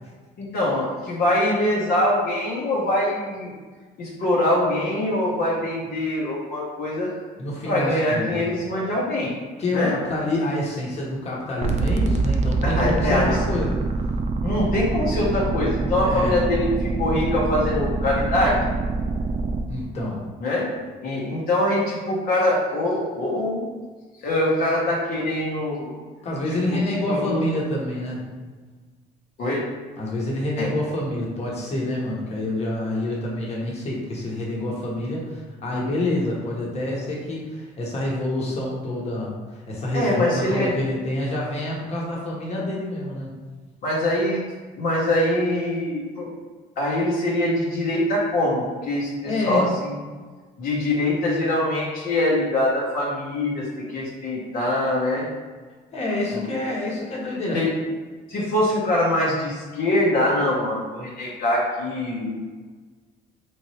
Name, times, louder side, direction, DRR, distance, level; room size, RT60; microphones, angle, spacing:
voice 1, 0.4-3.5 4.0-7.1 7.6-9.3 9.7-9.9 12.6-13.4 14.4-18.7 20.4-20.7 21.0-23.6 24.2-25.9 26.7-26.8 27.1-27.4 29.4-29.6 30.6-30.7 39.9-40.7 43.8-44.4 44.8-46.3 46.8-49.9 50.6-55.3 56.3-56.4 57.5-57.7 58.3-62.4, left 1 dB, 65° left, -5 dB, 1.0 m, -23 dB
voice 2, 7.4-8.4 9.6-13.8 16.0-16.4 19.7-20.2 26.2-28.2 30.0-43.3 49.2-49.8 55.9-57.6, left 1 dB, 40° left, -4 dB, 1.2 m, -27 dB
sound 1, 11.6-19.6, right 3 dB, 40° right, 0.4 m, -25 dB
4.3 x 3.1 x 2.9 m, 1.4 s
cardioid pair, 110°, 17 cm